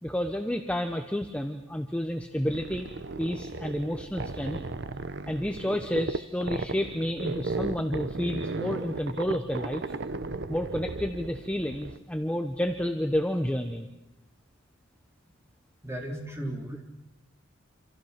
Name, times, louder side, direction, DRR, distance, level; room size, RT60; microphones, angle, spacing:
voice 1, 0.0-2.9 3.2-4.6 5.3-9.8 10.5-13.9, equal, 5° left, 5 dB, 0.9 m, -30 dB
sound 1, 2.5-12.0, right 3 dB, 55° right, 0.9 m, -35 dB
voice 2, 15.8-16.8, right 1 dB, 15° right, 0 dB, 3.7 m, -36 dB
28.0 x 27.0 x 5.9 m, 0.96 s
head